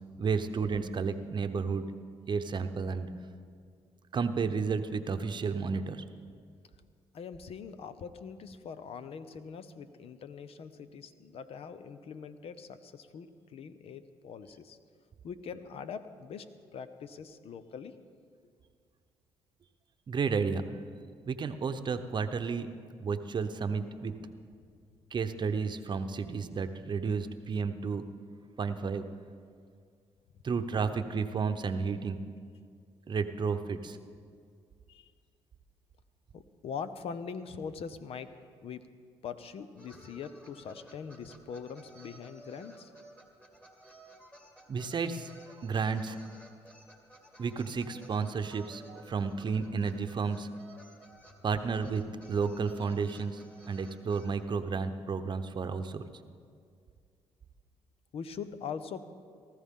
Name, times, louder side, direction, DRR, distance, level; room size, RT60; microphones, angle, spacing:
voice 1, 0.2-1.9 2.3-3.1 4.1-6.0 20.1-20.6 21.3-22.7 23.0-24.1 25.1-28.1 28.6-29.0 30.4-32.2 33.1-34.0 44.7-46.2 47.4-50.5 51.4-56.0, right 5 dB, 45° right, 9 dB, 0.9 m, -32 dB
voice 2, 7.1-14.8 15.2-18.0 34.9-35.1 36.3-38.3 38.6-38.9 39.2-42.9 58.1-59.0, left 6 dB, 60° left, 11 dB, 0.8 m, -42 dB
sound 1, 39.8-54.3, right 1 dB, 10° left, 2.1 m, -55 dB
18.5 x 14.0 x 3.7 m, 2.2 s
supercardioid pair, 70°, 11 cm